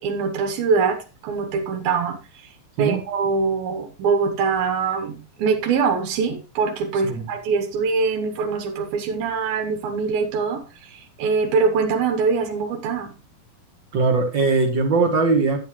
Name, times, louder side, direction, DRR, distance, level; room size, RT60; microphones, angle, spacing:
voice 1, 0.0-2.5 2.8-13.1, right 5 dB, 85° right, 4 dB, 3.0 m, -23 dB
voice 2, 13.9-15.6, right 3 dB, 55° right, 5 dB, 1.3 m, -20 dB
11.5 x 7.8 x 3.1 m, 0.32 s
omnidirectional pair, 4.1 m